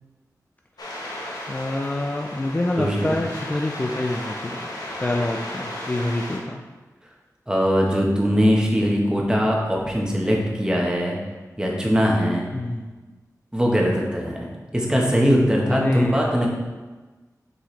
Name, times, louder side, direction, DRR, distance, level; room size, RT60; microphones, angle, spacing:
sound 1, 0.8-6.4, left 1 dB, 80° left, 1.1 m, -34 dB
voice 1, 1.5-4.7 5.0-6.6 12.5-12.9 15.6-16.5, left 2 dB, 25° left, 1 dB, 0.4 m, -26 dB
voice 2, 2.8-3.2 7.5-11.2 11.6-12.5 13.5-14.4 14.7-16.5, equal, 10° right, -2 dB, 1.1 m, -21 dB
6.2 x 4.9 x 3.2 m, 1.3 s
wide cardioid pair, 95°, 7 cm